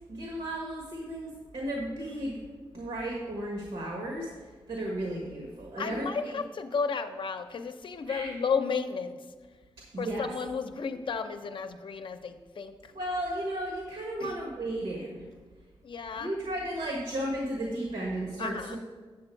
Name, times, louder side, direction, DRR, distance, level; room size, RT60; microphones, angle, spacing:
voice 1, 0.1-2.4 2.7-6.4 8.1-8.3 9.9-10.3 12.9-15.3 16.1-18.8, right 1 dB, 75° right, -1 dB, 1.4 m, -34 dB
voice 2, 5.8-9.2 10.0-12.8 14.2-14.3 15.8-16.3 18.4-18.8, left 5 dB, 60° left, 8 dB, 0.6 m, -33 dB
8.4 x 6.8 x 4.5 m, 1.4 s
wide cardioid pair, 135°, 10 cm